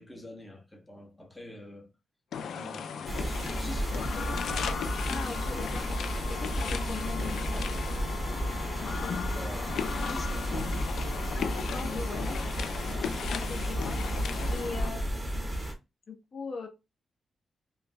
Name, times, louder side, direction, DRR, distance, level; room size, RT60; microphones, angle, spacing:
voice 1, 0.0-1.9 2.5-4.5 9.3-10.9 14.8-15.0, left 1 dB, 10° left, 1.0 m, -46 dB
sound 1, 2.3-14.9, left 7 dB, 80° left, 0.4 m, -36 dB
sound 2, 3.1-15.7, right 1 dB, 20° right, 2.2 m, -33 dB
voice 2, 5.1-5.9 6.3-8.0 8.8-9.2 11.3-15.0 15.3-15.6 16.1-16.7, left 4 dB, 60° left, 1.1 m, -41 dB
5.0 x 3.2 x 2.2 m
cardioid pair, 85°, 0 cm